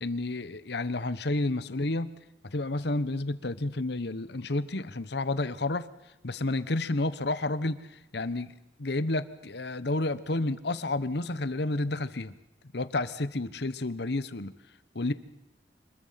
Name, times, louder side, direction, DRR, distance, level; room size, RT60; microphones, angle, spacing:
voice 1, 0.0-2.1 2.4-5.9 6.2-7.8 8.1-8.5 8.8-12.3 12.7-14.5 14.9-15.1, left 2 dB, 65° left, 14 dB, 1.1 m, -30 dB
25.5 x 21.5 x 5.8 m, 0.96 s
head